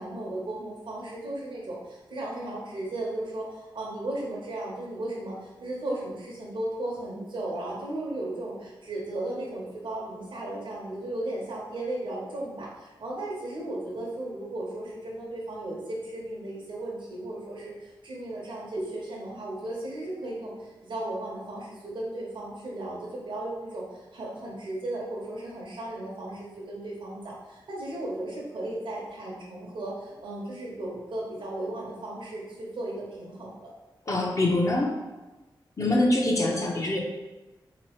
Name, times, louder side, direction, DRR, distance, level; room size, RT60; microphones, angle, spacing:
voice 1, 0.0-20.5 20.8-23.8 24.1-33.7, right 1 dB, 70° right, -4 dB, 0.8 m, -35 dB
voice 2, 34.1-34.9 35.8-37.0, left 1 dB, 40° left, -1 dB, 0.7 m, -24 dB
3.8 x 2.9 x 2.9 m, 1.2 s
wide cardioid pair, 80°, 8 cm